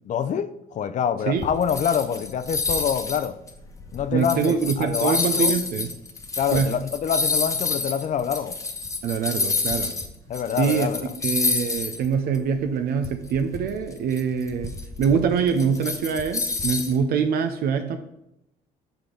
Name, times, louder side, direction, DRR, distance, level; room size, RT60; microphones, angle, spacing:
voice 1, 0.0-3.3 3.9-5.5 6.4-8.6 10.3-11.1, left 8 dB, 45° left, 0.5 m, -26 dB
sound 1, 1.4-10.1 10.3-12.1 12.3-12.5 13.0-17.0, left 3 dB, 20° left, 0.8 m, -28 dB
voice 2, 4.1-5.9 6.5-6.7 9.0-10.0 10.6-10.9 11.2-14.7 15.0-18.0, right 6 dB, 65° right, 0.6 m, -24 dB
6.9 x 5.0 x 3.8 m
cardioid pair, 110°, 17 cm